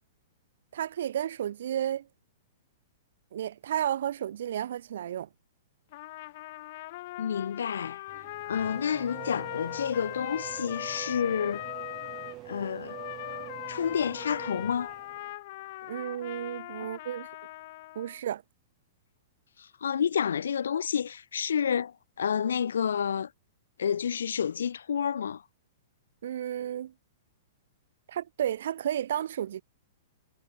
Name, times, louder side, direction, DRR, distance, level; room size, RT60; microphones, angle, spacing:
voice 1, 0.7-2.1 3.3-5.3 15.9-17.3 18.0-18.4 26.2-26.9 28.1-29.6, right 10 dB, 70° right, 0.5 m, -32 dB
Trumpet, 5.9-12.4 12.9-18.2, left 18 dB, 55° left, 1.1 m, -40 dB
voice 2, 7.2-8.0 8.4-11.6 12.5-13.0 13.7-14.9 19.6-23.3 23.8-25.4, left 7 dB, 80° left, 0.8 m, -29 dB
Race car auto racing / Accelerating revving vroom, 8.1-15.3, right 17 dB, 35° right, 5.3 m, -45 dB
hypercardioid pair, 125°, 0 cm